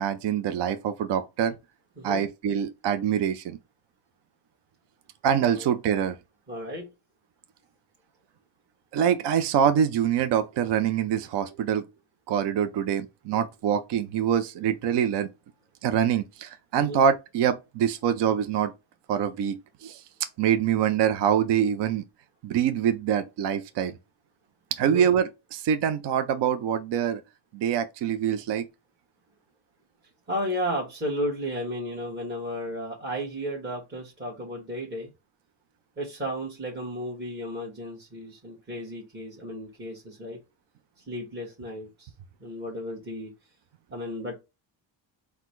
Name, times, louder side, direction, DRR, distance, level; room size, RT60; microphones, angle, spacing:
voice 1, 0.0-1.6 2.0-3.6 5.2-6.2 8.9-11.8 12.3-15.3 15.8-18.7 19.1-20.0 20.4-22.0 22.4-24.0 24.7-27.2 27.5-28.7, right 8 dB, 55° right, 0.6 m, -25 dB
voice 2, 6.5-6.9 16.8-17.0 24.8-25.1 30.3-35.1 36.0-40.4 41.1-42.1 42.4-43.3 43.9-44.3, equal, 20° right, 1.4 m, -33 dB
4.0 x 2.3 x 4.5 m
cardioid pair, 85°, 48 cm